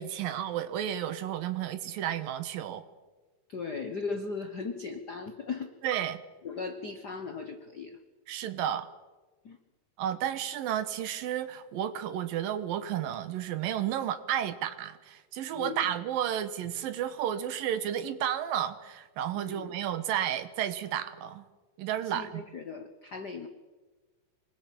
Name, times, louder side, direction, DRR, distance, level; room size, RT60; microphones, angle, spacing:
voice 1, 0.0-2.8 5.8-6.2 8.3-8.9 10.0-21.5 21.8-22.4, right 10 dB, 90° right, 12 dB, 3.0 m, -32 dB
voice 2, 3.5-5.7 6.4-8.0 9.4-9.6 15.5-15.9 19.3-19.7 22.0-23.5, left 4 dB, 90° left, 7 dB, 0.9 m, -38 dB
25.5 x 20.5 x 8.5 m, 1.3 s
omnidirectional pair, 3.9 m